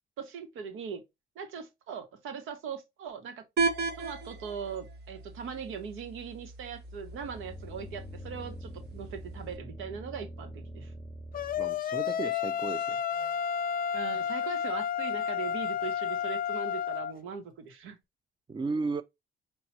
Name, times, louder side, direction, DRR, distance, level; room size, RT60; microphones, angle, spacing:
voice 1, 0.2-1.0 1.4-3.5 4.0-10.9 13.9-18.0, right 6 dB, 90° right, 1.7 m, -40 dB
sound 1, 3.6-9.6, right 4 dB, 55° right, 1.6 m, -36 dB
sound 2, 6.7-11.8, equal, 15° left, 0.8 m, -45 dB
sound 3, 11.3-17.1, left 8 dB, 45° left, 0.5 m, -31 dB
voice 2, 11.6-13.0 18.5-19.0, right 4 dB, 25° right, 0.6 m, -34 dB
5.7 x 2.9 x 2.9 m
cardioid pair, 90°, 20 cm